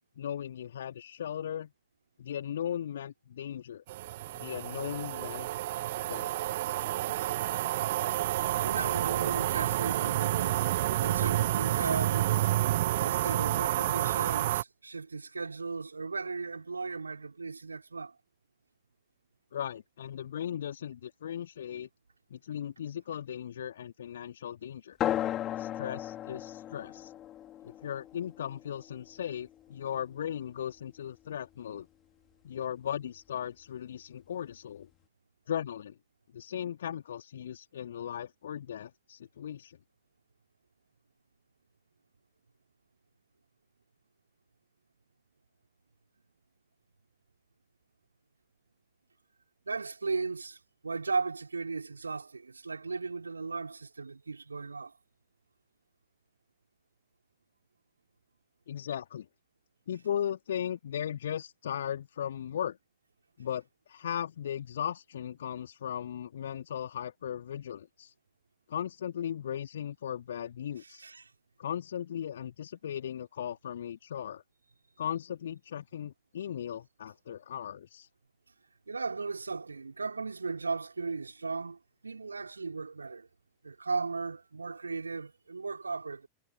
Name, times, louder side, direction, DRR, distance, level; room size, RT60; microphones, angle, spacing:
voice 1, 0.2-1.7 2.2-3.8 4.3-5.5 6.1-6.3 19.5-21.9 22.3-25.0 25.6-27.1 27.6-31.9 32.4-34.9 35.5-35.9 36.3-39.8 58.7-59.3 59.9-62.8 63.4-63.6 63.9-68.1 68.7-71.0 71.6-74.4 75.0-78.1, left 9 dB, 65° left, 3.2 m, -37 dB
sound 1, 3.9-14.6, right 15 dB, 55° right, 0.9 m, -29 dB
voice 2, 8.6-10.6 11.0-12.3 13.0-18.2 49.7-54.9 70.8-71.3 78.9-83.3 83.6-86.3, right 4 dB, 80° right, 4.3 m, -36 dB
sound 2, 25.0-30.0, left 12 dB, 30° left, 4.7 m, -36 dB
figure-of-eight pair, 90°, 0 cm